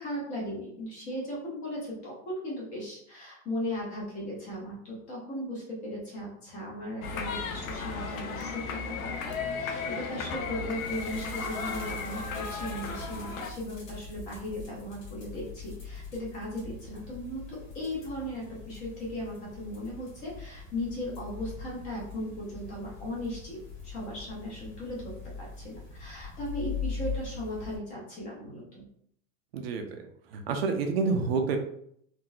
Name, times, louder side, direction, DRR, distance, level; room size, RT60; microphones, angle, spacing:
voice 1, 0.0-28.8, left 1 dB, 20° left, -4 dB, 0.7 m, -37 dB
sound 1, 7.0-13.5, left 4 dB, 90° left, 0.7 m, -35 dB
sound 2, 10.7-27.8, left 5 dB, 35° left, 1.1 m, -42 dB
voice 2, 29.5-30.1 30.3-31.6, right 4 dB, 50° right, 5 dB, 0.5 m, -28 dB
3.7 x 2.6 x 2.3 m, 0.68 s
supercardioid pair, 175°, 40 cm